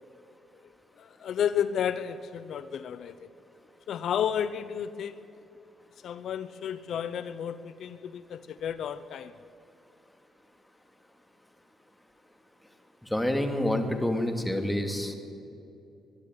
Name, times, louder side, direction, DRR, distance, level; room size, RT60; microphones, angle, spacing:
voice 1, 1.0-3.1 3.9-5.2 6.0-9.3, left 9 dB, 70° left, 13 dB, 0.8 m, -32 dB
voice 2, 13.1-15.2, left 1 dB, 5° left, 6 dB, 2.5 m, -27 dB
22.0 x 12.5 x 9.7 m, 2.8 s
cardioid pair, 90°, 0 cm